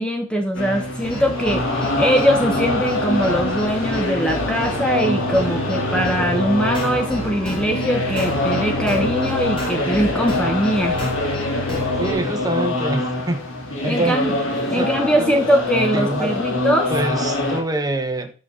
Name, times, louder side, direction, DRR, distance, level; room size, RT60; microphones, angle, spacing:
voice 1, 0.0-11.0 13.9-14.3 14.7-16.9, equal, 5° left, 4 dB, 0.7 m, -21 dB
sound 1, 0.5-17.6, left 2 dB, 75° left, 2.4 m, -24 dB
sound 2, 1.0-12.1, equal, 25° left, 3.0 m, -30 dB
voice 2, 12.0-13.4 13.7-14.2 14.7-14.9 15.9-16.3 16.9-18.3, right 2 dB, 20° right, 6 dB, 1.1 m, -25 dB
6.4 x 5.9 x 5.6 m, 0.37 s
head